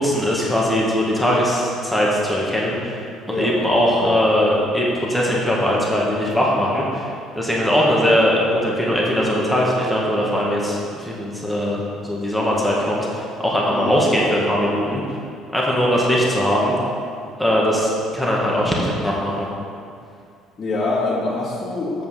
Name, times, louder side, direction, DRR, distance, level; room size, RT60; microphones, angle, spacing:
voice 1, 0.0-15.0 15.5-16.7 17.4-19.5, equal, ahead, -5 dB, 1.7 m, -20 dB
voice 2, 20.6-22.0, left 2 dB, 25° left, -9 dB, 2.2 m, -24 dB
7.6 x 5.9 x 7.2 m, 2.3 s
cardioid pair, 130°, 0 cm